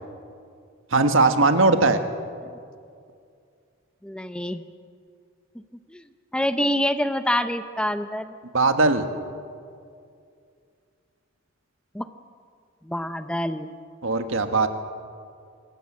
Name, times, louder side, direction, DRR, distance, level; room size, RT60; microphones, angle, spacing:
voice 1, 0.9-2.0 8.5-9.1 14.0-14.7, right 3 dB, 70° right, 8 dB, 1.5 m, -19 dB
voice 2, 4.0-4.6 5.9-6.0 6.3-8.3 11.9-12.1 12.8-13.7, left 1 dB, 5° left, 10 dB, 0.6 m, -26 dB
25.0 x 14.5 x 8.6 m, 2.3 s
head